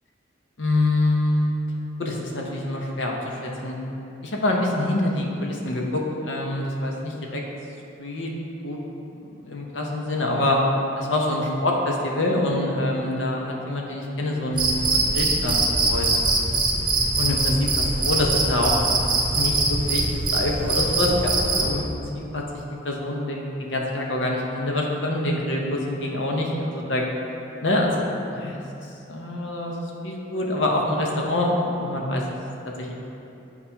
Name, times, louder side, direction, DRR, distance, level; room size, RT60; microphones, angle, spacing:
voice 1, 0.6-1.5 2.0-3.8 4.2-7.4 8.0-8.3 8.6-8.8 9.1-10.6 11.0-15.6 15.9-16.1 17.2-17.6 18.0-18.7 19.3-20.0 20.3-21.8 22.1-22.4 22.8-27.1 27.6-28.0 28.3-32.2 32.8-32.9, left 1 dB, 80° left, -1 dB, 0.9 m, -25 dB
Cricket, 14.5-21.7, right 2 dB, 25° right, 0.8 m, -23 dB
9.0 x 4.2 x 2.9 m, 2.8 s
head